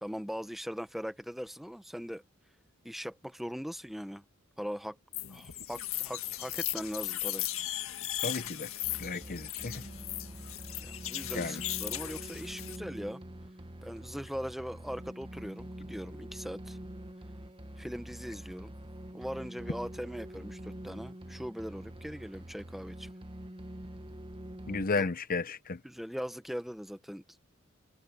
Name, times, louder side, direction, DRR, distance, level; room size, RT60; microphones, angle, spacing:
voice 1, 0.0-2.2 2.8-4.2 4.6-5.0 5.3-7.5 10.8-13.2 13.8-16.8 17.8-18.7 19.1-23.1 25.0-25.1 25.8-27.4, equal, ahead, 0.9 m, -40 dB
sound 1, 5.1-12.8, left 14 dB, 85° left, 1.7 m, -37 dB
voice 2, 8.2-8.7 9.0-9.8 11.3-11.6 24.7-25.8, left 4 dB, 45° left, 0.8 m, -33 dB
sound 2, 8.8-24.8, right 1 dB, 25° right, 1.3 m, -45 dB
head